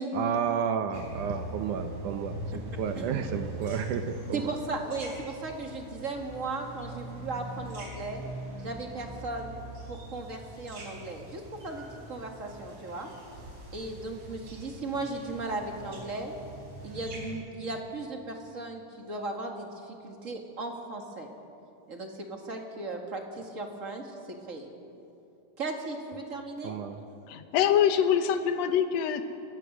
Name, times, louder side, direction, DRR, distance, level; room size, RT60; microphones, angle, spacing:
voice 1, 0.1-4.5 26.6-27.0, right 7 dB, 75° right, 7 dB, 2.3 m, -31 dB
sound 1, 0.9-17.3, right 1 dB, 60° right, 5.2 m, -42 dB
voice 2, 4.3-8.2 8.6-9.5 9.9-13.1 13.7-16.3 16.8-21.3 21.9-24.1 24.5-24.7 25.6-26.8, right 3 dB, 30° right, 2 dB, 1.6 m, -36 dB
voice 3, 27.3-29.2, left 9 dB, 65° left, 9 dB, 2.0 m, -24 dB
30.0 x 15.0 x 6.2 m, 2.8 s
omnidirectional pair, 3.7 m